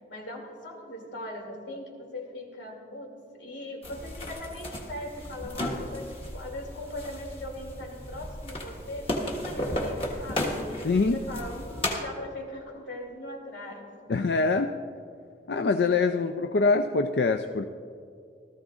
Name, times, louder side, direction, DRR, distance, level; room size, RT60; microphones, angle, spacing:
voice 1, 0.1-14.2 16.1-16.3, left 1 dB, 85° left, 0 dB, 2.7 m, -40 dB
sound 1, 3.8-12.0, left 1 dB, 30° left, 1.4 m, -34 dB
voice 2, 10.8-11.2 14.1-14.7 15.5-17.7, left 3 dB, 65° left, 7 dB, 0.4 m, -24 dB
18.0 x 13.5 x 2.5 m, 2.3 s
head